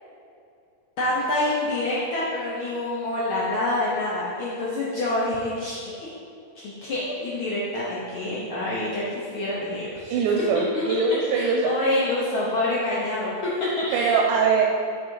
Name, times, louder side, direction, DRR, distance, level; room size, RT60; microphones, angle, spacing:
voice 1, 1.0-5.9 6.5-10.2 10.7-10.8 11.3-13.3 13.8-14.1, left 1 dB, 80° left, -7 dB, 1.1 m, -27 dB
voice 2, 10.1-11.7 13.9-14.6, right 5 dB, 90° right, 0 dB, 2.0 m, -22 dB
6.2 x 4.0 x 4.5 m, 2.4 s
omnidirectional pair, 3.5 m